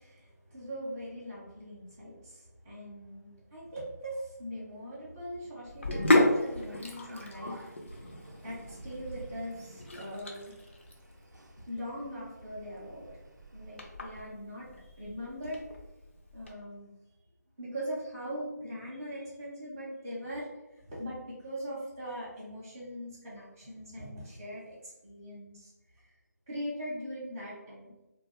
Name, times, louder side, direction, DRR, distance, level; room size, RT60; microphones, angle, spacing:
voice 1, 0.0-8.1 8.4-10.6 11.7-13.2 13.5-15.6 16.3-16.9 17.6-26.1 26.5-28.0, equal, 10° right, -10 dB, 0.5 m, -41 dB
Sink (filling or washing), 5.7-16.5, left 1 dB, 45° left, 0.5 m, -33 dB
sound 1, 6.5-13.9, right 1 dB, 90° right, 0.5 m, -50 dB
2.7 x 2.2 x 2.9 m, 1.0 s
figure-of-eight pair, 165°, 10 cm